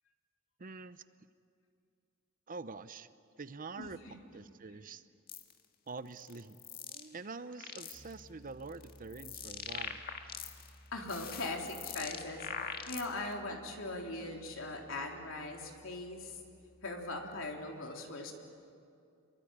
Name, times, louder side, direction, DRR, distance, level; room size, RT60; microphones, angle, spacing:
voice 1, 0.6-1.0 2.5-3.1 3.4-4.0 4.3-5.0 5.9-6.6 6.9-10.0, right 4 dB, 40° right, 13 dB, 0.7 m, -45 dB
voice 2, 3.8-4.1 10.9-16.4 16.8-18.3, left 2 dB, 65° left, 1 dB, 3.6 m, -40 dB
sound 1, 5.3-5.5 6.2-7.1 7.4-8.1 8.7-10.7 11.0-13.3, left 7 dB, 45° left, 1.7 m, -43 dB
Piano, 7.9-17.5, equal, 15° left, 6.1 m, -59 dB
28.0 x 23.0 x 8.8 m, 2.5 s
head